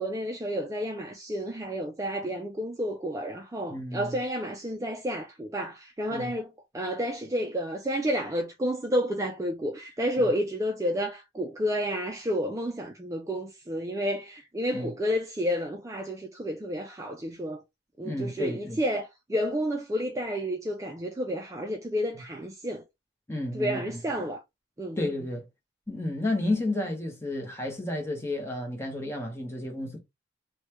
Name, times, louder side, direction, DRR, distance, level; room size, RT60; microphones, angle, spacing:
voice 1, 0.0-17.6 18.0-22.8 23.5-24.4 24.8-25.0, equal, 15° right, 0.3 m, -30 dB
voice 2, 3.7-4.2 6.1-6.4 10.2-10.3 14.7-14.9 18.0-18.8 22.1-22.2 23.3-24.0 25.0-25.4 25.9-30.0, left 1 dB, 15° left, 0.8 m, -31 dB
3.1 x 2.2 x 3.1 m
head